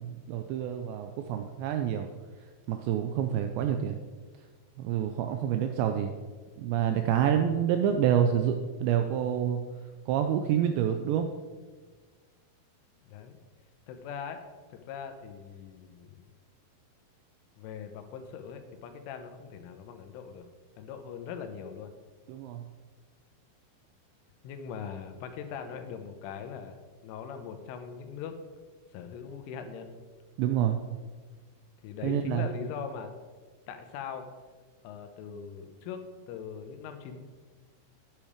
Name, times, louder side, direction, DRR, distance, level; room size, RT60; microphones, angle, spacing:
voice 1, 0.0-2.1 2.7-4.0 4.8-6.1 6.6-9.6 10.1-11.3 22.3-22.6 30.4-30.8 32.0-32.5, right 9 dB, 85° right, 6 dB, 2.5 m, -27 dB
voice 2, 13.0-13.4 13.9-14.4 14.7-16.3 17.6-20.5 20.8-21.9 24.4-26.8 27.0-28.4 28.9-29.9 31.8-33.1 33.7-34.3 34.8-37.2, left 7 dB, 85° left, 7 dB, 3.4 m, -41 dB
8.8 x 8.7 x 4.9 m, 1.4 s
omnidirectional pair, 5.6 m